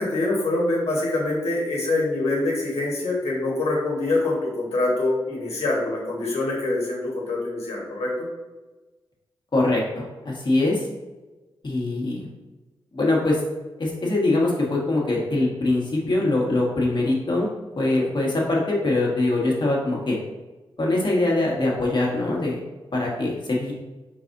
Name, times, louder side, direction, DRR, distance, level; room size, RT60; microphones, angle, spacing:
voice 1, 0.0-8.3, left 2 dB, 85° left, -4 dB, 1.3 m, -25 dB
voice 2, 9.5-10.9 11.6-12.3 12.9-13.4 13.8-17.5 17.8-20.2 20.8-22.6 22.9-23.7, left 2 dB, 45° left, -3 dB, 1.4 m, -23 dB
4.1 x 4.0 x 2.6 m, 1.2 s
cardioid pair, 50°, 10 cm